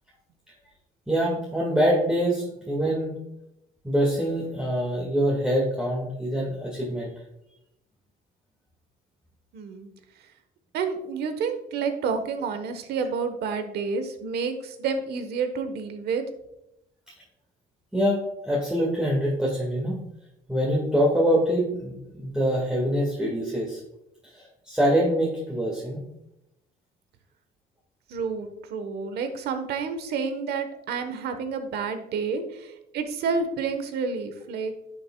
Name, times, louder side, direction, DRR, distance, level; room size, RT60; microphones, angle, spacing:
voice 1, 1.1-3.2 3.8-7.1 17.9-20.0 20.5-23.8 24.2-26.0, equal, 5° right, -4 dB, 1.7 m, -25 dB
voice 2, 9.5-9.9 10.7-16.2 28.1-34.7, right 5 dB, 70° right, 8 dB, 1.2 m, -29 dB
10.5 x 6.8 x 2.3 m, 0.84 s
cardioid pair, 110°, 17 cm